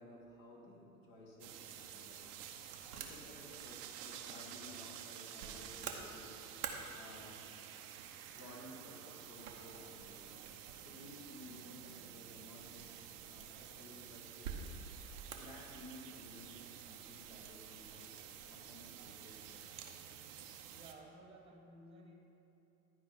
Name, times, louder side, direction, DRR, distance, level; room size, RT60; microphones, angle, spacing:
voice 1, 0.0-2.3 2.9-6.4 6.9-7.4 8.3-10.4 10.8-13.0 13.3-14.8 15.3-18.2 18.4-19.8, left 1 dB, 45° left, -3 dB, 2.0 m, -56 dB
sound 1, 1.1-20.7, right 6 dB, 80° right, 1.0 m, -53 dB
sound 2, 1.4-20.9, right 10 dB, 60° right, 0.9 m, -51 dB
sound 3, 5.4-12.9, right 10 dB, 30° right, 0.5 m, -61 dB
voice 2, 20.7-22.1, right 1 dB, 15° right, 1 dB, 1.3 m, -56 dB
11.5 x 4.7 x 5.8 m, 3.0 s
hypercardioid pair, 85°, 45 cm